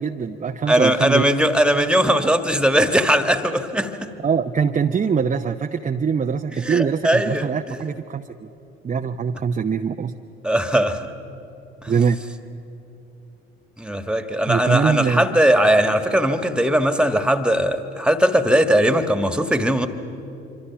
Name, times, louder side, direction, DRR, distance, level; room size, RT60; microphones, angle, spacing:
voice 1, 0.0-1.3 4.2-8.5 8.8-10.2 11.9-12.2 14.5-15.4, right 6 dB, 25° right, 5 dB, 0.8 m, -23 dB
voice 2, 0.7-3.9 6.6-7.8 10.4-11.0 11.8-11.9 13.8-19.9, right 1 dB, 5° right, 9 dB, 1.6 m, -19 dB
25.5 x 25.0 x 5.9 m, 2.8 s
figure-of-eight pair, 60°, 31 cm